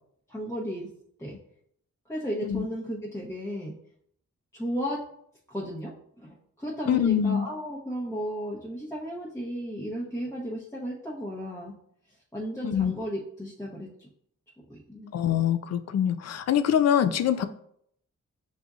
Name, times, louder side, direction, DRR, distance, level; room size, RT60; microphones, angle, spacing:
voice 1, 0.3-0.9 1.2-1.4 2.1-3.7 4.5-5.0 5.5-5.9 6.2-11.7 12.3-14.1 14.7-15.2, equal, 10° left, -5 dB, 0.8 m, -34 dB
voice 2, 6.9-7.5 12.6-12.9 15.1-17.5, left 9 dB, 55° left, 10 dB, 0.4 m, -24 dB
6.9 x 2.6 x 2.4 m, 0.69 s
cardioid pair, 65°, 31 cm